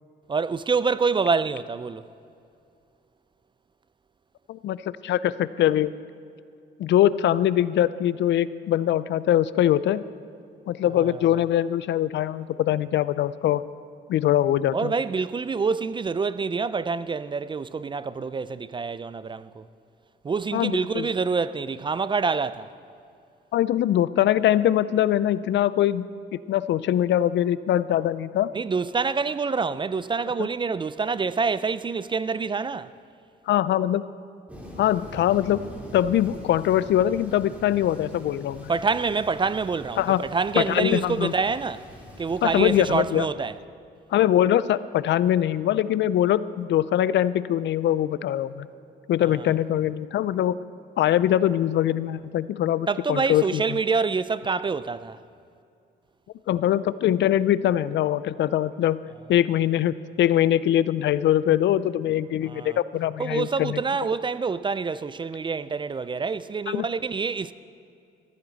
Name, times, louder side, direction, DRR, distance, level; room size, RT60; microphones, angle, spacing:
voice 1, 0.3-2.0 11.0-11.4 14.7-19.6 20.2-22.7 28.5-32.9 38.7-41.8 42.2-43.5 49.3-49.5 52.9-55.2 62.4-62.8 63.2-67.5, right 4 dB, 25° right, 0.4 m, -26 dB
voice 2, 4.5-5.9 6.8-10.0 10.7-13.6 14.1-14.9 20.5-21.1 23.5-26.1 26.5-28.5 30.4-30.5 33.5-34.1 34.8-35.6 35.9-38.7 40.0-40.2 40.6-41.3 42.4-43.3 44.1-48.7 49.1-50.6 51.0-53.6 56.5-59.0 59.3-63.8 66.7-66.9, left 12 dB, 65° left, 0.4 m, -22 dB
Thunder, 34.5-43.0, equal, 5° right, 3.5 m, -43 dB
14.5 x 14.0 x 4.0 m
cardioid pair, 90°, 20 cm